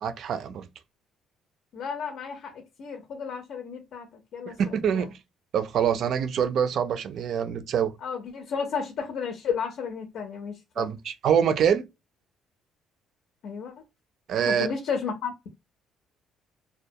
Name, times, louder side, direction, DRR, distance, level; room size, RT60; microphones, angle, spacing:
voice 1, 0.0-0.7 4.5-5.1 5.5-7.9 10.8-11.9 14.3-14.7, right 8 dB, 60° right, 0.3 m, -25 dB
voice 2, 1.7-4.1 4.3-5.0 8.0-10.9 13.4-13.7 14.5-15.5, left 6 dB, 65° left, 0.6 m, -33 dB
2.2 x 2.1 x 2.7 m
cardioid pair, 110°, 0 cm